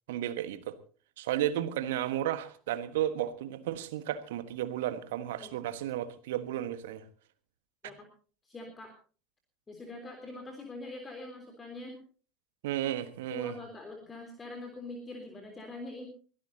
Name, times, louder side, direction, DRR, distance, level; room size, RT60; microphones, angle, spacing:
voice 1, 0.1-0.8 1.2-7.0 12.6-13.6, right 12 dB, 65° right, 1.4 m, -33 dB
voice 2, 8.4-8.9 9.7-12.0 13.3-16.1, left 2 dB, 20° left, 3.6 m, -43 dB
23.5 x 17.0 x 2.8 m
figure-of-eight pair, 75°, 0 cm